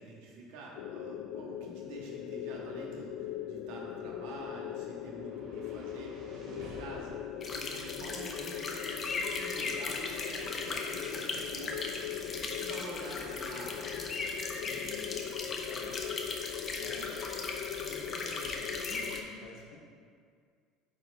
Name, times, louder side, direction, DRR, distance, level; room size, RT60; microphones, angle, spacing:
voice 1, 0.0-11.8 12.3-14.1, right 2 dB, 75° right, -3 dB, 1.5 m, -47 dB
sound 1, 0.8-19.2, left 10 dB, 70° left, 0.4 m, -40 dB
sound 2, 4.3-16.4, right 1 dB, 55° right, 1.3 m, -56 dB
sound 3, 7.4-19.2, left 3 dB, 25° left, 0.6 m, -38 dB
voice 2, 14.6-15.1 15.7-15.9 16.8-17.2 17.8-19.8, left 2 dB, 50° left, -2 dB, 1.3 m, -49 dB
8.8 x 4.5 x 3.6 m, 2.1 s
cardioid pair, 170°, 0 cm